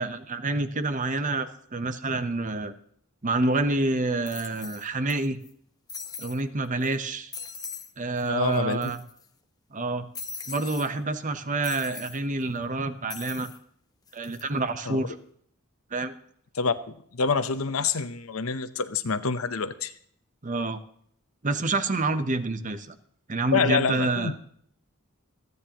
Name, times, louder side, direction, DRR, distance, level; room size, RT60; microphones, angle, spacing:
voice 1, 0.0-2.7 3.2-5.4 6.2-7.3 8.0-9.0 9.7-10.1 10.5-13.5 14.1-15.2 15.9-16.1 20.4-20.8 21.4-23.0 23.3-24.3, right 2 dB, 35° right, 10 dB, 0.9 m, -28 dB
sound 1, 3.4-3.5 4.3-5.1 5.4-5.5 5.9-6.4 6.8-7.0 7.3-7.9 8.2-8.3 8.5-9.2 10.1-10.9 11.6-12.2 13.1-13.6 14.1-14.4, left 5 dB, 20° left, 1.0 m, -40 dB
voice 2, 8.2-8.8 14.9-15.1 16.6-19.9 23.5-24.4, left 5 dB, 75° left, 11 dB, 0.8 m, -27 dB
27.5 x 9.5 x 3.0 m, 0.64 s
head